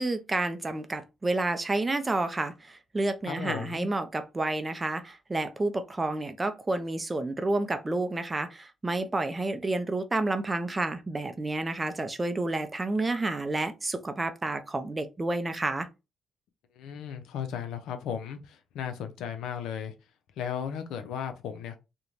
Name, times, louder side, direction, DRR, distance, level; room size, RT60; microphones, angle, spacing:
voice 1, 0.0-15.9, right 2 dB, 20° right, 0.4 m, -30 dB
voice 2, 3.3-3.9 16.8-19.9 20.4-21.8, left 8 dB, 85° left, 0.5 m, -35 dB
2.5 x 2.2 x 3.0 m
cardioid pair, 90°, 0 cm